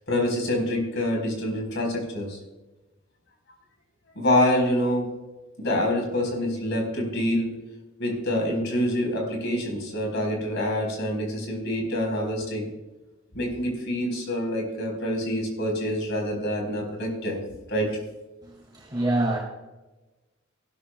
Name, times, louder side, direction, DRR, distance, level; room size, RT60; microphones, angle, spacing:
voice 1, 0.1-2.4 4.2-5.1 5.6-7.5 8.0-12.7 13.3-17.4 17.7-17.9, left 1 dB, 60° left, 2 dB, 4.2 m, -26 dB
voice 2, 18.5-19.4, right 1 dB, 25° right, -2 dB, 2.0 m, -26 dB
17.0 x 12.0 x 2.3 m, 1.1 s
head